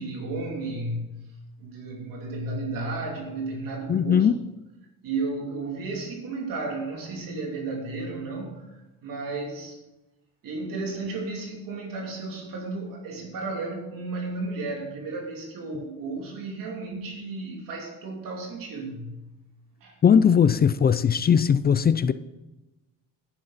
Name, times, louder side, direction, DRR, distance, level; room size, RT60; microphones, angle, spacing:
voice 1, 0.0-4.3 5.0-9.8 10.4-19.4 19.8-20.0, right 3 dB, 70° right, 2.9 m, -33 dB
voice 2, 3.9-4.4 20.0-22.1, left 7 dB, 30° left, 0.4 m, -19 dB
11.5 x 11.0 x 4.1 m
cardioid pair, 145°, 35 cm